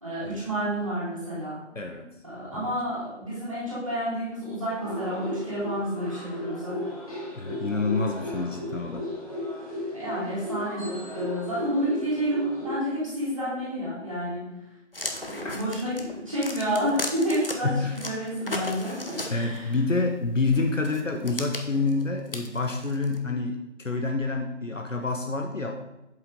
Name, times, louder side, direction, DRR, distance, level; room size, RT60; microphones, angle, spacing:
voice 1, 0.0-1.6 2.2-6.8 9.9-14.4 15.2-19.8, equal, 15° right, -16 dB, 2.8 m, -30 dB
voice 2, 1.7-2.1 2.5-2.7 7.4-9.1 15.4-15.6 17.6-18.0 19.3-25.8, left 3 dB, 80° left, 3 dB, 1.3 m, -28 dB
sound 1, 4.8-12.8, left 1 dB, 30° left, 2.2 m, -35 dB
sound 2, 14.9-17.5 18.0-19.7 20.5-23.2, left 1 dB, 45° left, 1.1 m, -35 dB
8.1 x 7.9 x 3.9 m, 0.92 s
figure-of-eight pair, 175°, 38 cm